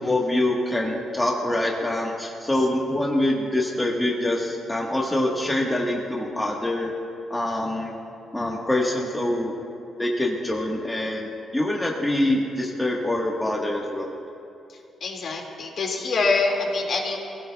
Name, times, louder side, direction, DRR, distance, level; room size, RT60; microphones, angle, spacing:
voice 1, 0.0-6.9 7.3-7.9 8.3-9.5 10.0-14.1, left 1 dB, 10° left, -2 dB, 1.3 m, -25 dB
voice 2, 15.0-17.2, left 3 dB, 50° left, 0 dB, 2.1 m, -25 dB
27.0 x 16.0 x 2.3 m, 2.6 s
cardioid pair, 145°, 0 cm